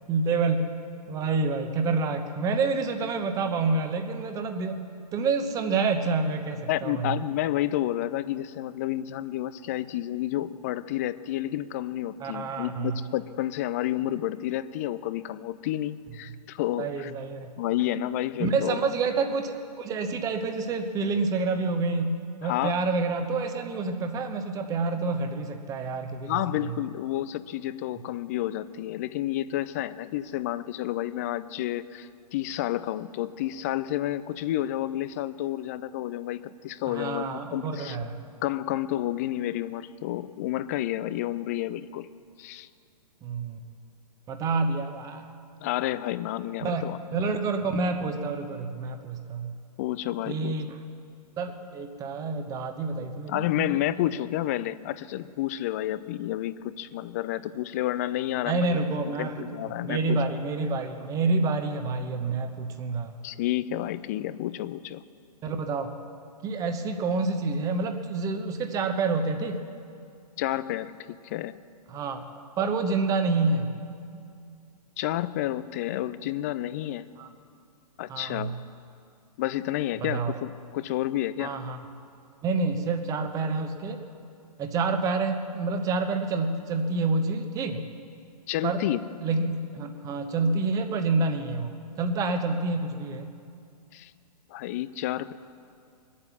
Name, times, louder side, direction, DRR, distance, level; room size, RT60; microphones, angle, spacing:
voice 1, 0.1-0.7 1.1-4.8 5.1-7.1 12.2-13.0 16.8-17.5 18.4-26.3 26.6-26.7 36.9-38.2 43.2-43.6 44.3-45.3 46.6-46.8 47.1-49.5 50.3-50.7 51.4-53.8 58.5-59.5 59.8-63.1 65.4-65.9 66.4-69.6 71.9-72.2 72.6-73.7 77.2-77.3 78.1-78.5 80.0-80.3 81.4-81.8 82.4-84.0 84.6-87.8 88.6-88.8 89.2-93.3, right 3 dB, 15° right, 7 dB, 1.0 m, -28 dB
voice 2, 6.7-17.1 17.6-18.9 22.4-22.7 26.2-38.0 38.4-42.1 42.4-42.7 45.6-47.3 49.8-50.5 53.3-58.8 59.2-60.2 63.2-65.0 70.4-71.6 75.0-77.1 78.0-78.6 79.4-81.6 88.5-89.1 93.9-94.1 94.5-95.3, left 13 dB, 25° left, 16 dB, 0.4 m, -30 dB
23.0 x 8.5 x 7.2 m, 2.4 s
figure-of-eight pair, 120°, 21 cm